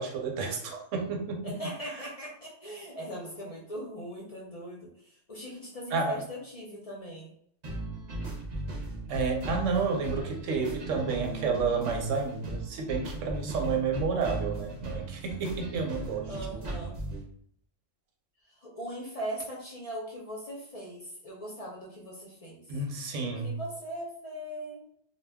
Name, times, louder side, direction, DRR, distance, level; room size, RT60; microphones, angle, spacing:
voice 1, 0.0-1.5 5.9-6.2 9.1-16.3 22.7-23.6, right 4 dB, 85° right, 2 dB, 1.0 m, -30 dB
voice 2, 1.4-7.3 16.2-17.0 18.4-22.6 23.2-24.8, right 1 dB, 45° left, -3 dB, 0.4 m, -40 dB
sound 1, 7.6-17.2, right 2 dB, 45° right, 0.7 m, -37 dB
2.2 x 2.2 x 3.3 m, 0.67 s
omnidirectional pair, 1.3 m